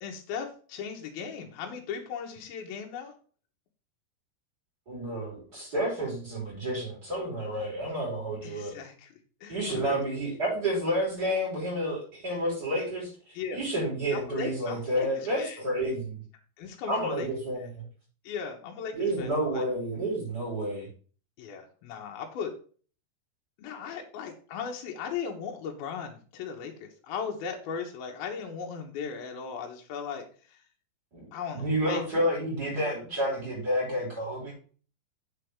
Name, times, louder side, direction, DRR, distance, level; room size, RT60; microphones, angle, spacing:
voice 1, 0.0-3.1 8.4-9.1 9.4-10.0 13.3-13.6 14.1-15.6 16.6-17.3 18.2-19.7 21.4-22.5 23.6-30.6 31.3-32.2, left 6 dB, 70° left, 1 dB, 2.9 m, -37 dB
voice 2, 4.9-8.7 9.5-13.1 13.5-16.2 16.9-17.8 19.0-20.9 31.1-31.3 31.5-34.5, right 1 dB, 20° right, -4 dB, 5.2 m, -30 dB
8.3 x 8.0 x 3.6 m, 0.40 s
omnidirectional pair, 4.7 m